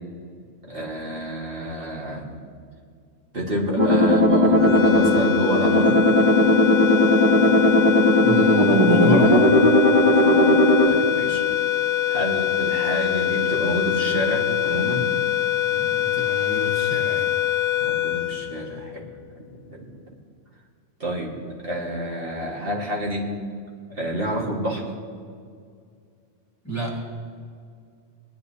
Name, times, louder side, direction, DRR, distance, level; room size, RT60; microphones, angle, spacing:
voice 1, 0.6-2.4 3.3-6.0 10.1-11.4 12.1-15.1 17.8-19.1 19.3-19.9 21.0-21.4 21.6-23.3 23.9-24.8, right 1 dB, 50° right, -3 dB, 1.9 m, -28 dB
sound 1, 3.8-10.9, left 1 dB, 25° right, 1.1 m, -17 dB
sound 2, 4.5-19.1, left 12 dB, 75° left, 0.9 m, -24 dB
voice 2, 8.2-9.5 15.7-17.3 26.6-27.0, equal, 15° left, -2 dB, 1.5 m, -29 dB
20.5 x 10.5 x 2.8 m, 2.2 s
omnidirectional pair, 1.3 m